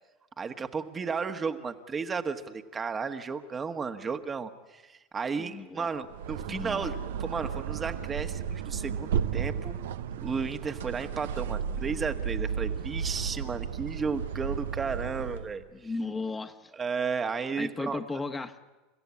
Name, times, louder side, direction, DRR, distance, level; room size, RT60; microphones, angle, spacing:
voice 1, 0.4-9.8 10.2-15.6 16.7-18.0, right 5 dB, 25° right, 7 dB, 1.5 m, -33 dB
voice 2, 5.4-5.9 6.5-6.9 15.7-16.7 17.6-18.6, left 3 dB, 20° left, 7 dB, 1.5 m, -35 dB
sound 1, 6.0-15.6, right 8 dB, 80° right, 0.9 m, -33 dB
29.5 x 15.0 x 8.5 m, 1.2 s
hypercardioid pair, 85°, 0 cm